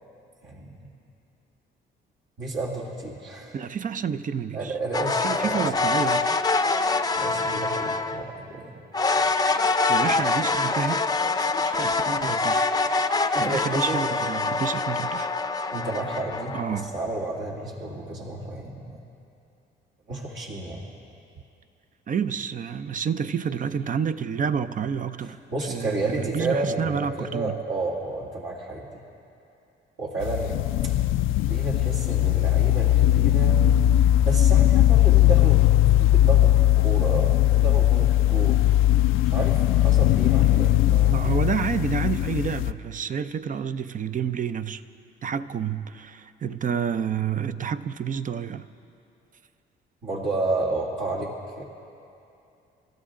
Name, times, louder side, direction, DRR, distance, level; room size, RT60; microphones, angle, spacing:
voice 1, 0.4-0.9 2.4-3.6 4.5-5.7 7.1-8.8 13.3-14.0 15.7-19.0 20.1-20.8 25.2-29.0 30.0-30.6 30.8-30.9 31.4-33.6 34.2-38.7 39.2-41.4 50.0-51.6, right 2 dB, 65° right, 2.4 m, -31 dB
voice 2, 3.5-4.7 5.2-6.4 9.9-11.0 11.4-12.7 13.4-15.3 16.5-16.9 22.1-25.4 25.7-27.6 41.1-44.8 45.2-48.7, right 7 dB, 40° right, 0.6 m, -29 dB
sound 1, 4.9-8.3 8.9-17.1, left 3 dB, 20° left, 0.6 m, -25 dB
sound 2, 30.2-42.7, left 13 dB, 85° left, 0.4 m, -19 dB
29.5 x 13.0 x 3.8 m
cardioid pair, 90°, 20 cm